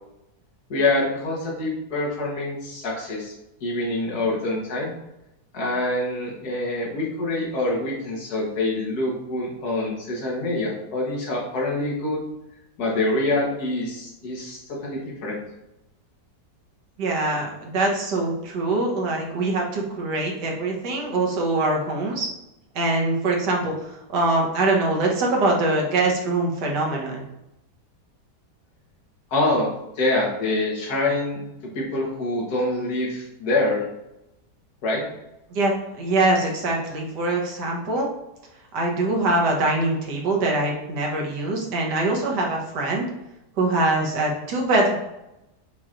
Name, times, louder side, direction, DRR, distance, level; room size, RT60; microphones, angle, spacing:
voice 1, 0.7-3.3 3.6-4.9 5.5-12.2 12.8-15.4 29.3-31.4 31.7-33.9 34.8-35.0, left 2 dB, 65° left, -2 dB, 1.6 m, -25 dB
voice 2, 17.0-22.3 22.7-27.2 35.5-38.1 38.7-43.1 43.6-45.0, right 2 dB, 80° right, -1 dB, 1.5 m, -23 dB
6.2 x 2.9 x 2.4 m, 0.90 s
omnidirectional pair, 1.8 m